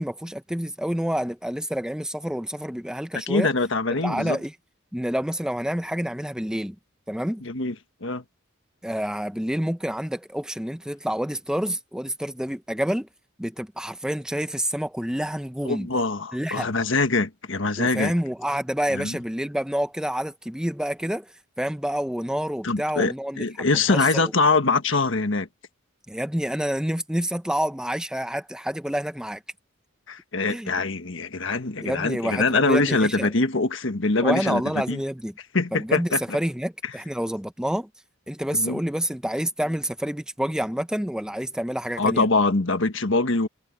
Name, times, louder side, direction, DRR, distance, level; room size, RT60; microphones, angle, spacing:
voice 1, 0.0-3.5 4.0-4.5 4.9-6.7 7.1-7.4 8.8-13.1 13.4-15.9 16.3-16.7 17.8-21.3 21.6-23.4 23.7-24.3 26.1-29.4 30.5-30.7 31.8-33.3 34.2-35.3 35.7-37.9 38.3-42.2, equal, 5° right, 0.7 m, -28 dB
voice 2, 3.1-4.4 7.4-7.7 8.0-8.2 15.6-18.1 18.9-19.2 22.6-25.5 30.1-34.6 34.9-35.0 35.5-36.2 38.5-38.8 42.0-43.5, left 3 dB, 65° left, 1.5 m, -23 dB
head